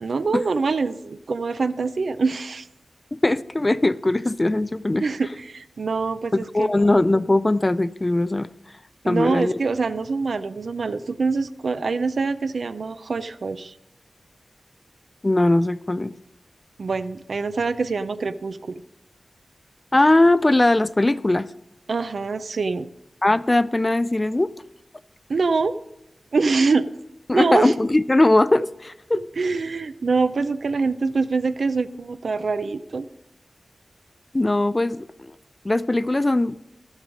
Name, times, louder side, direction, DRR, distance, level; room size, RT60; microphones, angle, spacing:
voice 1, 0.0-2.7 5.0-6.7 9.0-13.7 16.8-18.8 21.9-22.9 25.3-25.8 26.3-26.9 27.3-27.7 29.1-33.1, right 4 dB, 75° right, 0.5 m, -24 dB
voice 2, 3.2-5.0 6.3-8.5 9.1-9.5 15.2-16.1 19.9-21.5 23.2-24.5 27.3-29.2 34.3-35.3 35.6-36.6, left 2 dB, 25° left, 0.3 m, -20 dB
12.0 x 7.3 x 5.1 m
wide cardioid pair, 80°, 0 cm